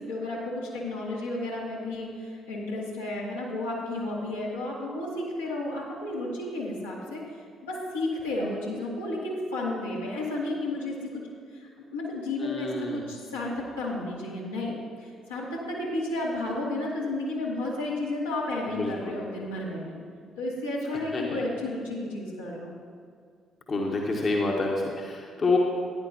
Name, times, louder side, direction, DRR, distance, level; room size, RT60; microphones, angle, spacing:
voice 1, 0.1-7.2 7.6-11.2 11.5-20.0 20.4-22.7, left 2 dB, 80° left, -6 dB, 1.9 m, -32 dB
voice 2, 12.4-13.0 18.8-19.1 21.1-21.4 23.7-25.6, left 3 dB, 40° left, 0 dB, 1.2 m, -28 dB
14.5 x 10.0 x 2.8 m, 2.1 s
figure-of-eight pair, 45°, 0 cm